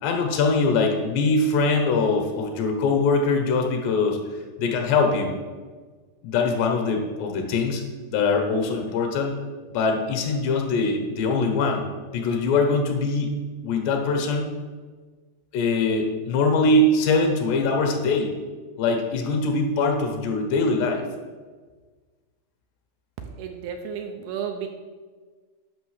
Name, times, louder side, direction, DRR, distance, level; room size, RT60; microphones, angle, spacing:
voice 1, 0.0-4.2 4.6-5.3 6.2-7.8 8.1-9.4 9.7-11.8 12.1-13.3 13.6-14.5 15.5-18.3 18.8-21.1, left 3 dB, 80° left, 3 dB, 3.4 m, -22 dB
voice 2, 23.2-24.7, right 7 dB, 75° right, 5 dB, 2.4 m, -33 dB
9.4 x 6.4 x 6.4 m, 1.4 s
omnidirectional pair, 4.9 m